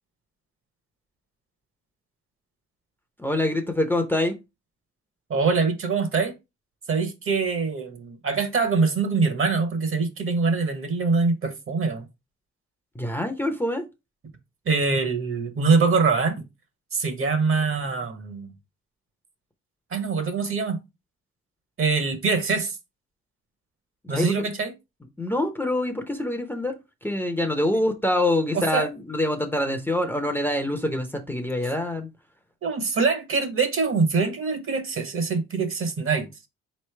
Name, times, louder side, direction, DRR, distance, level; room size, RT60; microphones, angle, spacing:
voice 1, 3.2-4.4 12.9-13.9 24.0-24.5 25.2-26.7 27.0-32.1, left 1 dB, 5° left, 0.6 m, -25 dB
voice 2, 5.3-6.3 6.9-12.1 14.7-16.4 16.9-18.5 19.9-20.8 21.8-22.8 24.1-24.7 28.5-28.9 32.6-36.3, right 4 dB, 45° right, 1.1 m, -24 dB
4.1 x 3.2 x 3.2 m
cardioid pair, 90°, 30 cm